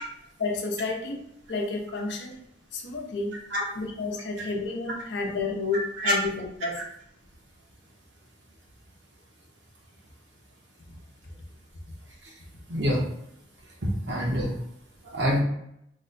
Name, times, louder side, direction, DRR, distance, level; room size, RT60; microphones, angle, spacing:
voice 1, 0.4-2.4 2.7-3.4 3.7-6.8, left 3 dB, 75° left, 1 dB, 0.7 m, -31 dB
voice 2, 5.7-6.1 12.7-13.0 13.8-14.5 15.0-15.4, equal, 80° right, -3 dB, 1.1 m, -26 dB
3.1 x 2.2 x 3.9 m, 0.76 s
head